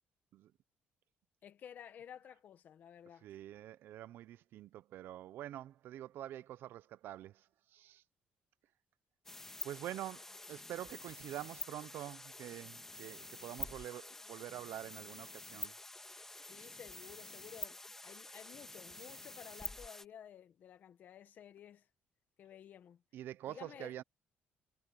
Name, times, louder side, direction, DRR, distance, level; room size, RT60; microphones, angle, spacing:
voice 1, 1.4-3.3 16.5-21.9 22.4-23.0 23.5-23.9, left 9 dB, 50° left, 1.4 m, -54 dB
voice 2, 3.2-7.3 7.7-8.0 9.6-15.7 23.1-24.0, right 13 dB, 70° right, 0.6 m, -46 dB
sound 1, 9.3-20.1, left 2 dB, 10° left, 1.7 m, -48 dB
cardioid pair, 155°, 4 cm